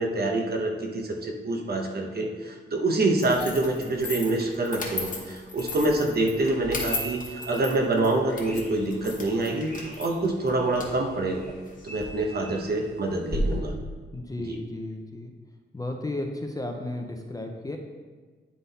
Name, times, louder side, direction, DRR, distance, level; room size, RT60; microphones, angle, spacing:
voice 1, 0.0-7.2 7.5-11.4 11.8-13.7 14.5-14.6, right 2 dB, 50° right, 2 dB, 0.9 m, -26 dB
sound 1, 3.2-12.0, left 3 dB, 40° left, 1.2 m, -37 dB
sound 2, 5.6-13.6, equal, ahead, 2.0 m, -37 dB
voice 2, 14.1-15.3 15.7-17.8, left 2 dB, 15° left, 3 dB, 0.5 m, -34 dB
9.7 x 3.9 x 4.0 m, 1.4 s
wide cardioid pair, 135°, 21 cm